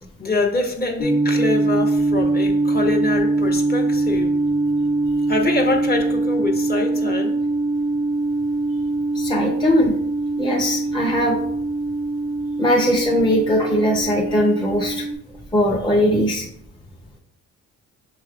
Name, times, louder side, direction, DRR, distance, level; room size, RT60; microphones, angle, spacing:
voice 1, 0.2-4.4 5.3-7.4, left 3 dB, 30° left, 3 dB, 1.0 m, -24 dB
sound 1, 1.0-15.1, right 2 dB, 55° left, 1.3 m, -22 dB
voice 2, 9.1-9.9 10.4-11.4 12.6-15.0 15.5-16.5, equal, 15° left, -2 dB, 0.7 m, -20 dB
6.5 x 3.1 x 2.4 m, 0.68 s
cardioid pair, 90°, 30 cm